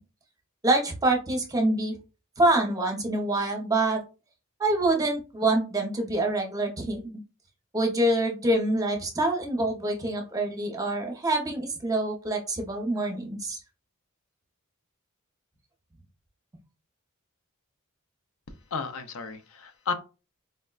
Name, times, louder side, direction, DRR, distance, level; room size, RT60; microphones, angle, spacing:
voice 1, 0.6-2.0 2.4-4.0 4.6-7.0 7.7-13.6, right 2 dB, 15° right, 2 dB, 0.6 m, -26 dB
voice 2, 18.7-19.9, left 5 dB, 75° left, 9 dB, 0.5 m, -33 dB
4.2 x 2.1 x 2.3 m, 0.32 s
head